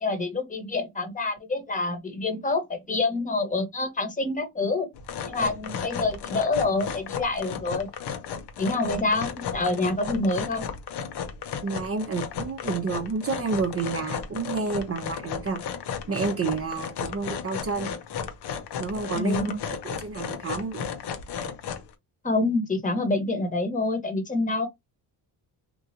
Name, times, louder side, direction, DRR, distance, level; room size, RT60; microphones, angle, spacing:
voice 1, 0.0-4.9 5.3-7.9 8.6-10.6 19.1-19.6 22.2-24.7, left 2 dB, 20° left, 1.1 m, -27 dB
sound 1, 4.9-21.9, left 7 dB, 70° left, 0.8 m, -34 dB
voice 2, 11.6-15.6 16.1-17.9 18.8-19.5 19.8-20.9, right 4 dB, 35° right, 0.6 m, -30 dB
3.0 x 2.5 x 2.7 m
cardioid pair, 80°, 43 cm